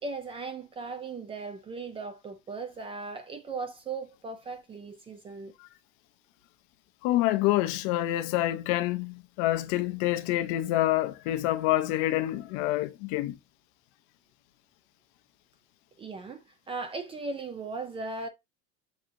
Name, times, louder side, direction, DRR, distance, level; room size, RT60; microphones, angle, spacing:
voice 1, 0.0-5.5 16.0-18.3, right 4 dB, 20° right, 0.4 m, -38 dB
voice 2, 7.0-13.4, left 15 dB, 60° left, 0.6 m, -27 dB
6.3 x 2.8 x 2.5 m
cardioid pair, 160°, 31 cm